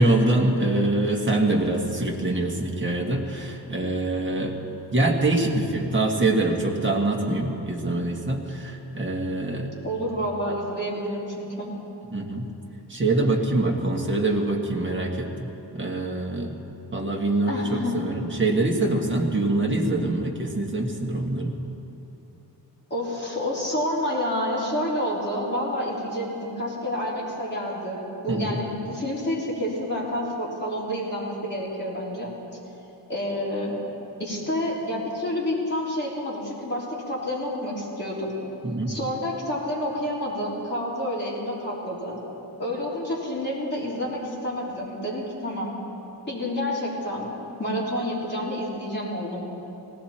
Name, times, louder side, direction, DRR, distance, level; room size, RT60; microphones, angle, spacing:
voice 1, 0.0-4.5 4.9-9.7 12.1-12.5 12.9-16.5 16.9-21.6 28.3-28.6 38.6-39.0, right 2 dB, 25° right, -1 dB, 1.7 m, -24 dB
voice 2, 9.8-11.7 17.5-17.9 22.9-32.3 33.1-33.7 34.2-38.3 38.9-42.2 42.6-45.7 46.3-47.3 47.6-49.4, equal, 25° left, -7 dB, 3.5 m, -29 dB
18.5 x 17.5 x 4.4 m, 2.9 s
wide cardioid pair, 145°, 43 cm